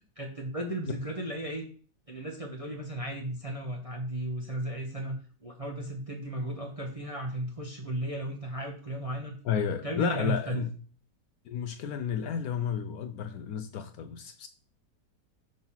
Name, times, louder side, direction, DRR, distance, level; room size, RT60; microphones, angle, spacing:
voice 1, 0.2-1.6 2.1-9.4 9.8-10.6, right 1 dB, 30° right, 0.7 m, -35 dB
voice 2, 9.5-10.7 11.5-14.5, left 7 dB, 70° left, 0.9 m, -32 dB
6.1 x 3.8 x 5.6 m
omnidirectional pair, 1.9 m